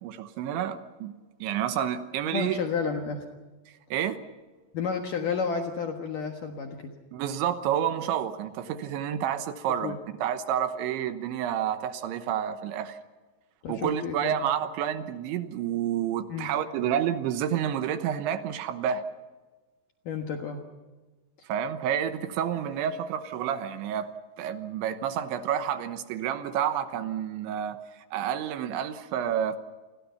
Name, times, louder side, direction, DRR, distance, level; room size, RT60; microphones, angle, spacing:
voice 1, 0.0-1.1 1.4-2.6 3.9-4.2 7.1-13.0 13.7-19.0 21.5-24.1 24.4-27.8 28.1-29.6, right 9 dB, 75° right, 9 dB, 3.3 m, -29 dB
voice 2, 2.3-3.2 4.7-6.9 9.8-10.0 13.6-14.5 16.3-16.5 20.1-20.6, left 5 dB, 60° left, 3 dB, 2.3 m, -31 dB
30.0 x 22.0 x 5.7 m, 1.3 s
omnidirectional pair, 5.6 m